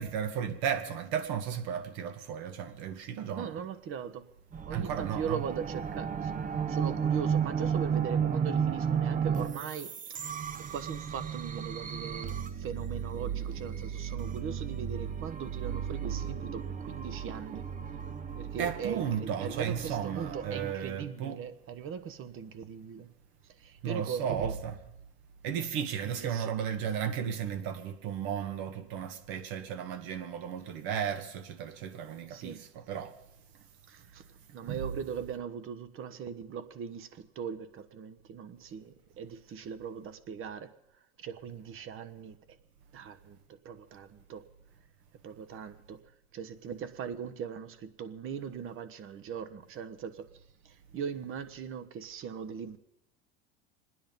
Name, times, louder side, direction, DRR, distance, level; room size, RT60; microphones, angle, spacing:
voice 1, 0.0-3.5 4.7-5.4 18.6-21.4 23.8-24.8 25.4-33.1 34.6-34.8, right 8 dB, 65° right, 1.8 m, -34 dB
voice 2, 3.3-4.3 4.7-6.3 6.7-10.4 10.7-17.6 18.4-23.1 23.6-24.5 26.0-26.5 32.3-32.6 33.9-40.7 41.2-42.4 42.9-44.4 45.2-46.0 46.3-50.3 50.6-52.8, right 7 dB, 40° right, 1.2 m, -40 dB
sound 1, 4.5-20.7, right 7 dB, 25° right, 0.8 m, -34 dB
26.0 x 10.0 x 5.4 m
hypercardioid pair, 95°, 31 cm